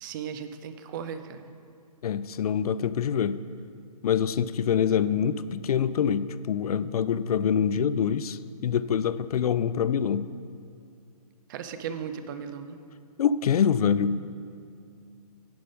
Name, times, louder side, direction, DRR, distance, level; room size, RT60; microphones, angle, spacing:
voice 1, 0.0-1.5 11.5-12.8, right 7 dB, 30° right, 9 dB, 0.5 m, -36 dB
voice 2, 2.0-3.4 4.0-10.3 13.2-14.2, left 8 dB, 70° left, 15 dB, 0.4 m, -25 dB
10.5 x 5.2 x 5.1 m, 2.4 s
hypercardioid pair, 145°, 20 cm